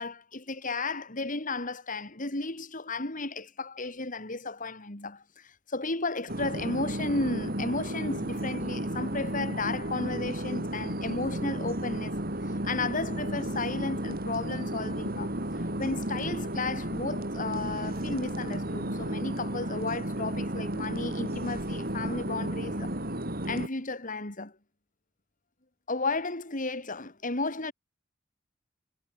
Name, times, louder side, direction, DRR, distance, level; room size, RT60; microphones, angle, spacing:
voice 1, 0.0-12.2 12.6-15.4 15.8-22.9 23.4-24.5 25.9-27.7, left 3 dB, 45° left, 3.3 m, -33 dB
sound 1, 6.3-23.7, right 1 dB, 50° right, 6.7 m, -33 dB
head